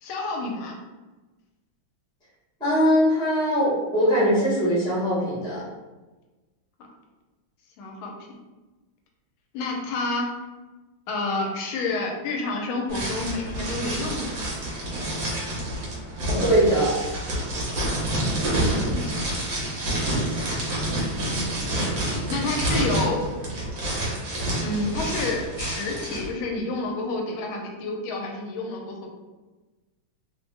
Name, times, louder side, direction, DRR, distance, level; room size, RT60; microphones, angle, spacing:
voice 1, 0.0-0.7 7.8-8.1 9.5-10.3 11.1-14.5 18.0-19.0 22.3-23.2 24.6-29.1, left 3 dB, 90° left, 1 dB, 1.4 m, -29 dB
voice 2, 2.6-5.6 16.3-16.9, equal, 5° left, -8 dB, 0.6 m, -21 dB
sound 1, 12.9-26.3, right 1 dB, 55° right, 1.1 m, -28 dB
3.3 x 2.1 x 3.2 m, 1.2 s
omnidirectional pair, 2.2 m